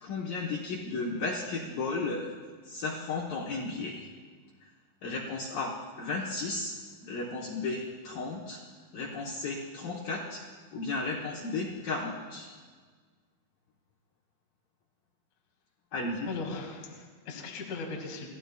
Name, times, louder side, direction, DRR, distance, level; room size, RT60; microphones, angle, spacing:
voice 1, 0.0-2.3 2.6-4.1 5.0-8.6 8.9-10.4 10.7-12.5 15.9-16.3, left 3 dB, 85° left, -4 dB, 1.9 m, -34 dB
voice 2, 16.3-18.3, left 4 dB, 50° left, -1 dB, 2.6 m, -38 dB
28.5 x 15.0 x 2.3 m, 1.5 s
omnidirectional pair, 5.8 m